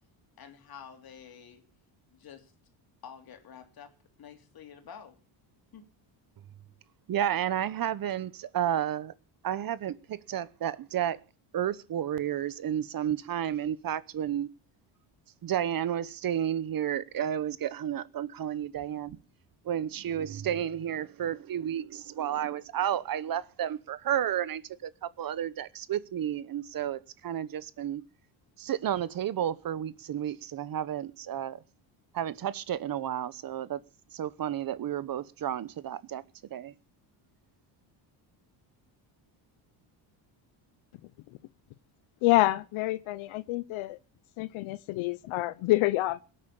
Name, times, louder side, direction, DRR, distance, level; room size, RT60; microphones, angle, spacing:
voice 1, 0.4-1.6 2.1-2.5 3.0-5.2 5.7-5.9, left 7 dB, 50° left, 3.2 m, -49 dB
voice 2, 7.1-9.1 9.4-11.2 11.5-14.5 15.4-19.2 19.6-28.0 28.6-31.6 32.1-33.8 34.1-36.2 36.5-36.7, right 10 dB, 45° right, 1.0 m, -32 dB
voice 3, 42.2-44.0 44.4-46.2, left 17 dB, 80° left, 0.8 m, -27 dB
18.0 x 8.7 x 7.1 m
cardioid pair, 110°, 48 cm